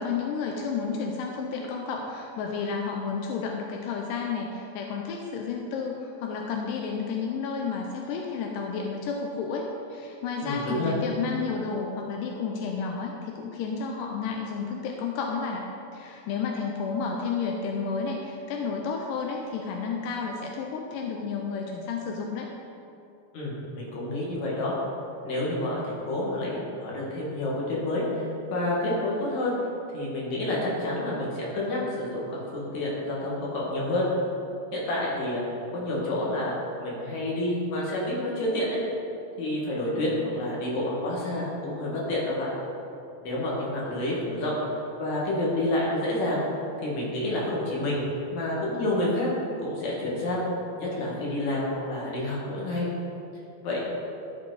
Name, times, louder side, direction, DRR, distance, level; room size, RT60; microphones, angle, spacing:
voice 1, 0.0-15.6 15.9-22.5, left 5 dB, 85° left, 1 dB, 2.3 m, -31 dB
voice 2, 10.4-11.0 23.3-24.7 25.2-29.5 29.9-34.1 34.7-35.4 35.7-36.5 36.8-38.8 39.4-42.5 43.2-44.6 44.9-46.4 46.8-48.0 48.3-49.3 49.6-50.4 50.8-52.9 53.6-53.8, left 1 dB, 60° left, -5 dB, 2.9 m, -29 dB
13.0 x 4.7 x 4.0 m, 2.7 s
omnidirectional pair, 3.8 m